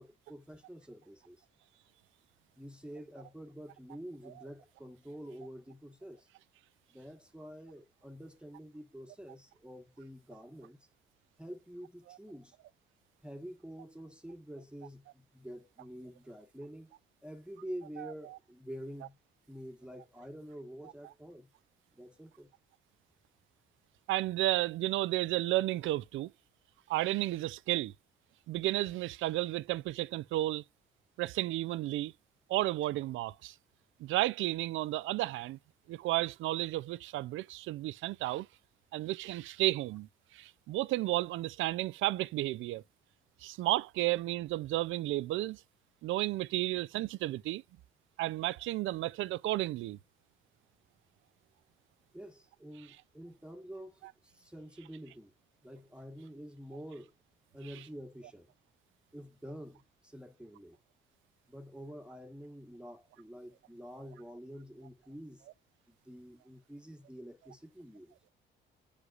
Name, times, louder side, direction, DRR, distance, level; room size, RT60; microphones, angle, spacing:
voice 1, 0.0-1.4 2.6-6.3 6.9-10.9 11.4-12.6 13.2-17.0 17.2-19.2 19.5-21.5 21.9-22.5 52.1-55.3 55.6-57.1 57.5-58.5 59.1-60.8 61.5-65.5 65.9-68.1, equal, 5° right, 1.2 m, -48 dB
voice 2, 24.1-26.3 26.9-27.9 28.5-30.6 31.2-32.1 32.5-33.5 34.0-35.6 35.9-38.5 38.9-42.8 43.4-45.6 46.0-47.6 48.2-50.0, right 16 dB, 80° right, 0.4 m, -32 dB
9.4 x 5.0 x 2.4 m
cardioid pair, 90°, 20 cm